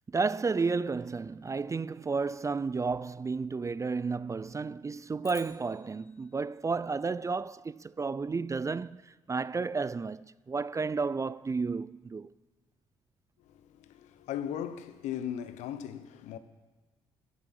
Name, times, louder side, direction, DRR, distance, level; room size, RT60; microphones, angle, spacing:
voice 1, 0.1-9.0 9.3-12.3, right 4 dB, 25° right, 0.4 m, -32 dB
sound 1, 5.2-7.7, left 3 dB, 25° left, 2.1 m, -53 dB
voice 2, 13.4-16.4, left 9 dB, 75° left, 0.9 m, -38 dB
11.5 x 11.0 x 7.6 m
hypercardioid pair, 50°, 12 cm